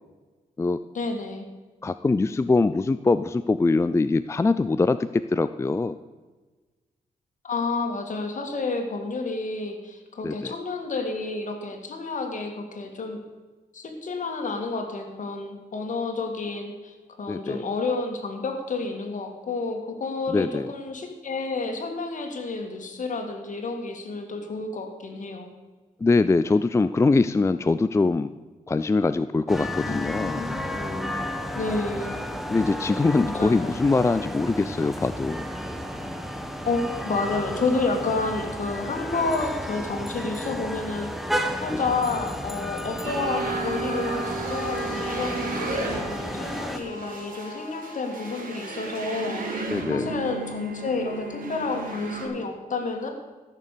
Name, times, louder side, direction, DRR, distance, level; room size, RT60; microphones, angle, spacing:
voice 1, 0.9-1.4 7.4-13.2 13.7-25.5 29.9-31.1 31.5-32.1 33.2-33.7 36.7-41.3 41.6-53.1, left 3 dB, 60° left, 4 dB, 2.2 m, -30 dB
voice 2, 1.8-5.9 10.2-10.5 17.3-17.6 20.3-20.7 26.0-28.3 28.7-30.4 32.5-35.5 41.7-41.8 49.7-50.2, left 3 dB, 20° left, 12 dB, 0.3 m, -23 dB
sound 1, 29.5-46.8, equal, ahead, 1.1 m, -32 dB
sound 2, 43.0-52.3, right 3 dB, 70° right, 2.7 m, -33 dB
14.0 x 6.8 x 6.7 m, 1.3 s
cardioid pair, 90°, 15 cm